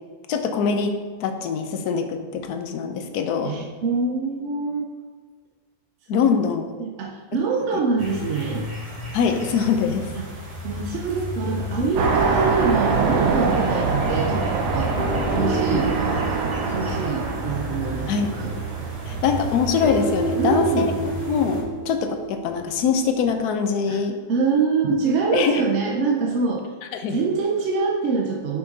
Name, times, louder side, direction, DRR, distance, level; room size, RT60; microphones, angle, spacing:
voice 1, 0.3-3.6 6.1-6.7 9.1-10.1 15.7-15.8 18.1-18.3 19.1-24.2 25.3-25.6 26.9-27.2, left 6 dB, 70° left, 6 dB, 1.1 m, -23 dB
voice 2, 3.4-4.9 6.1-6.3 6.7-8.7 10.1-10.3 10.6-14.9 15.3-15.9 16.7-18.5 20.4-20.9 23.9-24.0 24.3-26.6 27.1-28.6, right 4 dB, 60° right, -1 dB, 0.8 m, -24 dB
sound 1, 8.0-21.6, equal, 25° right, 1.0 m, -33 dB
sound 2, 11.9-19.9, right 4 dB, 75° right, 1.3 m, -25 dB
sound 3, 14.1-23.4, right 4 dB, 25° left, 1.3 m, -33 dB
5.8 x 5.2 x 3.9 m, 1.5 s
omnidirectional pair, 1.8 m